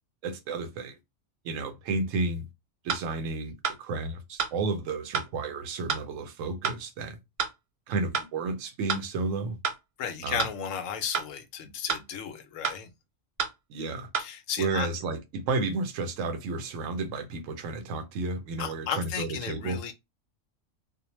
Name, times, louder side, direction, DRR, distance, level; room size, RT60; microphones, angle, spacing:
voice 1, 0.2-1.0 1.4-2.5 2.8-7.2 7.9-9.6 10.2-10.4 13.7-14.1 14.6-19.8, right 3 dB, 90° right, 1.0 m, -32 dB
sound 1, 2.9-3.1 3.6-3.8 4.4-4.6 5.1-5.3 5.9-6.1 6.6-6.8 7.4-7.6 8.1-8.3 8.9-9.1 9.6-9.8 10.4-10.6 11.1-11.3 11.9-12.1 12.6-12.8 13.4-13.6 14.1-14.2, right 6 dB, 60° right, 0.8 m, -29 dB
voice 2, 10.0-12.9 14.2-14.9 18.6-19.9, left 8 dB, 85° left, 1.0 m, -34 dB
2.4 x 2.1 x 3.0 m
omnidirectional pair, 1.3 m